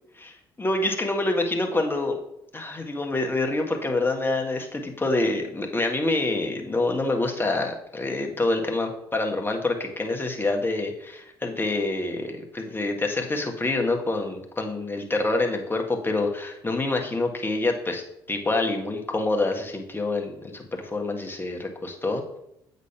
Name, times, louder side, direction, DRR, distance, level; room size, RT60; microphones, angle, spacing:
voice 1, 0.2-2.2 2.5-22.2, left 2 dB, 20° left, 3 dB, 1.7 m, -26 dB
8.2 x 4.1 x 5.6 m, 0.79 s
hypercardioid pair, 55°, 11 cm